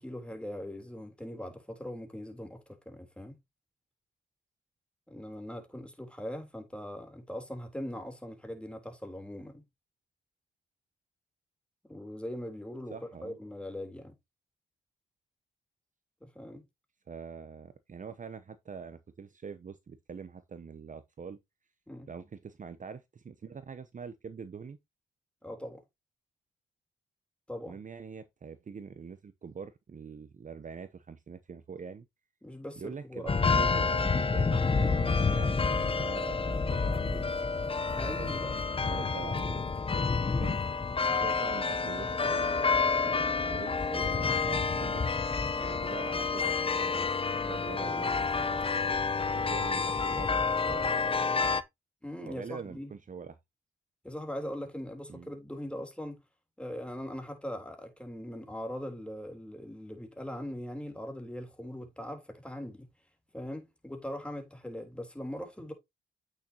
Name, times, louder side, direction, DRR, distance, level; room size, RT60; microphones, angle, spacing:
voice 1, 0.0-3.4 5.1-9.6 11.9-13.0 13.2-14.1 16.4-16.6 21.9-22.1 25.4-25.8 27.5-27.8 32.4-33.4 38.0-38.6 52.0-52.9 54.0-56.2 56.6-62.9 63.3-65.7, equal, 5° left, 3.5 m, -40 dB
voice 2, 12.9-13.4 17.1-21.4 22.1-24.8 27.7-32.1 32.8-37.3 38.0-39.7 40.1-40.6 41.1-45.1 45.6-48.7 49.3-51.6 52.3-53.4 55.1-55.3, right 6 dB, 40° right, 0.9 m, -44 dB
sound 1, 33.3-51.6, left 4 dB, 30° left, 0.8 m, -29 dB
8.5 x 6.6 x 2.9 m
supercardioid pair, 60°, 20 cm